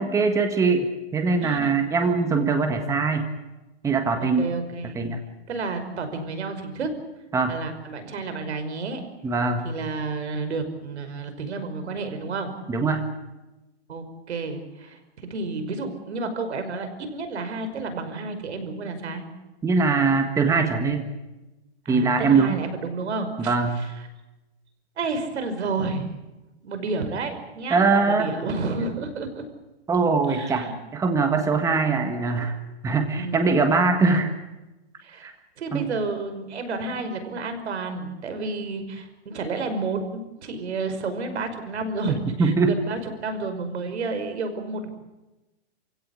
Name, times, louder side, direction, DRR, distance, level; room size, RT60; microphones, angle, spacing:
voice 1, 0.0-3.3 3.8-4.5 4.9-5.2 7.3-7.6 9.2-9.6 12.7-13.0 19.6-21.1 21.9-22.6 23.4-23.8 27.7-28.3 29.9-32.5 32.8-34.3 35.2-35.3 35.7-35.9 42.1-42.8, right 4 dB, 10° right, 6 dB, 1.6 m, -22 dB
voice 2, 1.4-2.9 4.2-5.0 5.5-6.9 7.5-9.0 9.6-12.5 13.9-19.2 21.9-24.1 25.0-26.1 26.6-29.5 30.3-30.8 33.1-33.6 35.0-35.3 35.6-44.9, right 3 dB, 85° right, 8 dB, 5.5 m, -31 dB
28.5 x 16.5 x 8.6 m, 1.0 s
hypercardioid pair, 155°, 33 cm